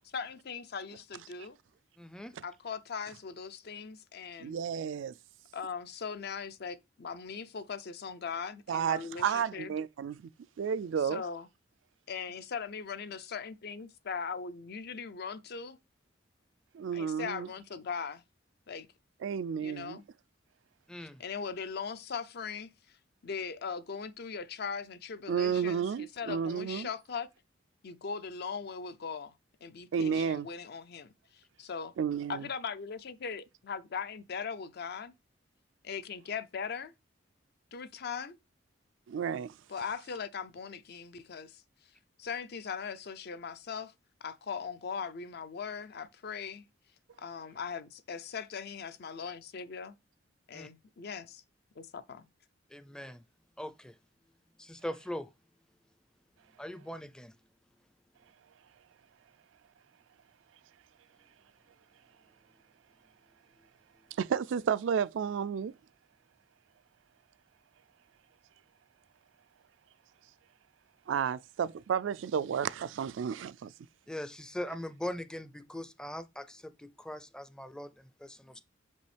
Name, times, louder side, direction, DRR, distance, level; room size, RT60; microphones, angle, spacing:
voice 1, 0.1-1.6 2.4-4.5 5.5-9.7 11.0-11.5 12.1-15.8 16.9-18.2 18.7-18.9 19.6-20.0 21.0-23.0 23.2-27.3 27.8-29.3 29.6-31.9 32.3-35.1 35.8-36.9 37.7-38.4 39.7-41.6 42.2-43.9 44.2-46.6 47.2-50.0 50.5-51.4 51.8-52.3, left 6 dB, 55° left, 0.5 m, -40 dB
voice 2, 2.0-2.3 20.9-21.2 50.5-50.7 52.7-53.2 53.6-53.9 54.6-55.3 56.6-57.3 74.1-76.6 77.0-77.9 78.2-78.6, left 1 dB, 5° left, 0.4 m, -40 dB
voice 3, 4.4-5.1 8.7-10.3 10.6-11.2 16.7-17.5 19.2-20.0 25.3-26.9 29.9-30.5 32.0-32.5 39.1-39.5 64.2-65.7 71.1-73.7, right 7 dB, 75° right, 0.3 m, -32 dB
6.1 x 5.3 x 3.3 m
head